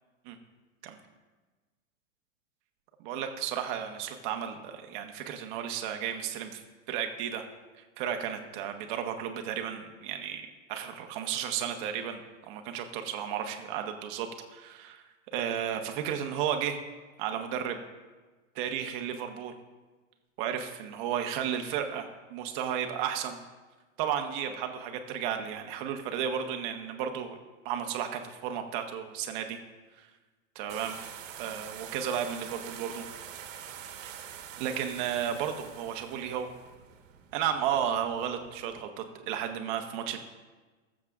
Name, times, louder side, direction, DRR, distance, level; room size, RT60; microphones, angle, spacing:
voice 1, 3.0-7.4 8.0-12.2 12.5-15.0 15.3-16.8 17.2-17.8 18.5-19.5 20.4-23.4 24.0-27.4 27.6-29.6 30.0-30.1 30.5-31.0 31.4-33.0 34.0-34.1 34.6-36.5 37.3-40.2, right 9 dB, 40° right, 5 dB, 1.0 m, -33 dB
sound 1, 30.7-38.8, right 9 dB, 70° right, 1.3 m, -45 dB
21.0 x 7.4 x 2.4 m, 1.3 s
supercardioid pair, 155°, 40 cm